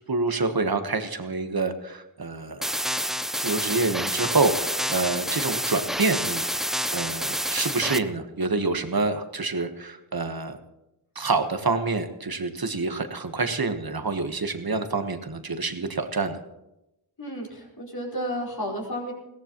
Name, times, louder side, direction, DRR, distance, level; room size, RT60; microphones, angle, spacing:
voice 1, 0.1-2.6 3.4-10.6 11.1-16.4, right 3 dB, 55° right, 8 dB, 1.3 m, -27 dB
sound 1, 2.6-8.0, equal, ahead, 0.4 m, -28 dB
voice 2, 17.2-19.1, equal, 55° left, -2 dB, 4.8 m, -32 dB
21.0 x 17.0 x 3.0 m, 0.94 s
wide cardioid pair, 65°, 44 cm